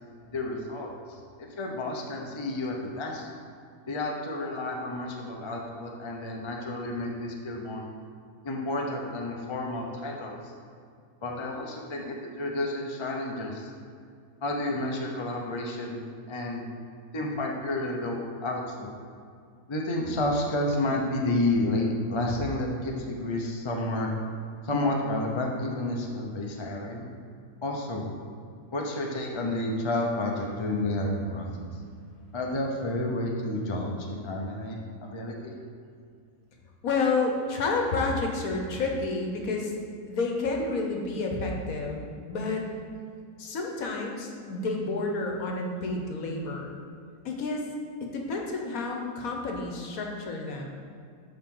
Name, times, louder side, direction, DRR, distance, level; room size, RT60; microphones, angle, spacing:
voice 1, 0.3-0.9 1.4-3.3 3.9-7.9 8.4-10.5 11.2-13.7 14.4-16.0 16.3-16.7 17.1-18.9 19.7-24.1 24.6-27.1 27.6-28.1 28.7-31.8 32.3-35.6, left 1 dB, 30° left, 0 dB, 0.6 m, -30 dB
voice 2, 36.8-39.7 40.1-42.0 42.2-42.6 43.4-46.7 47.2-47.6 48.1-50.6, left 3 dB, 65° left, 1 dB, 1.3 m, -30 dB
11.5 x 3.9 x 3.8 m, 2.3 s
omnidirectional pair, 1.7 m